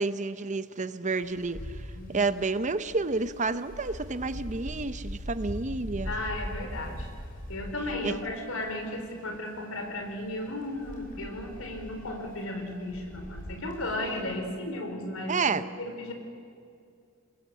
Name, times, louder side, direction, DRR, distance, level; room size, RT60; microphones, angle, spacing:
voice 1, 0.0-1.7 2.1-6.1 8.0-8.1 15.3-15.7, right 3 dB, 35° right, 0.8 m, -30 dB
Wind, 1.2-14.3, equal, 40° left, 6.8 m, -41 dB
voice 2, 6.0-7.1 7.5-16.1, left 1 dB, 80° left, 4.9 m, -35 dB
28.5 x 21.0 x 8.4 m
head